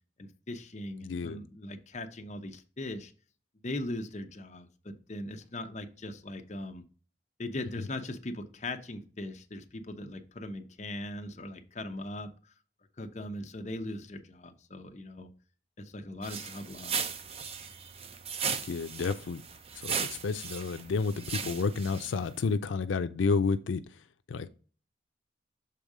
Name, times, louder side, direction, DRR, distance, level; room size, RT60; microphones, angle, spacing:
voice 1, 0.2-3.1 3.6-6.8 7.4-12.5 13.0-15.3 15.8-17.1, left 1 dB, 40° left, 0.7 m, -40 dB
voice 2, 1.0-1.4 18.6-19.4 19.7-24.5, left 4 dB, 90° left, 0.4 m, -31 dB
sound 1, 16.2-22.4, right 6 dB, 30° right, 0.6 m, -37 dB
6.8 x 3.6 x 4.8 m
head